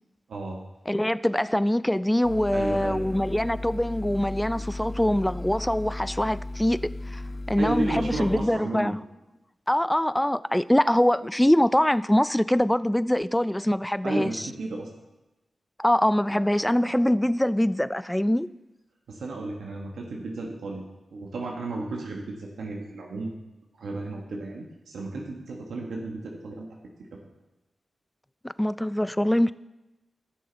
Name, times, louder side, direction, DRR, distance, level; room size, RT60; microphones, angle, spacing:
voice 1, 0.3-0.6 2.5-3.1 7.6-8.9 14.0-14.9 19.1-20.8 21.1-23.3 23.8-26.7 27.0-27.2, right 2 dB, 85° right, 1.2 m, -33 dB
voice 2, 0.9-6.8 7.1-7.2 7.5-9.0 9.7-14.5 15.8-18.5 28.4-29.5, left 1 dB, 10° left, 0.3 m, -23 dB
sound 1, 2.2-8.5, left 2 dB, 55° left, 1.0 m, -36 dB
14.5 x 6.7 x 3.9 m
cardioid pair, 50°, 0 cm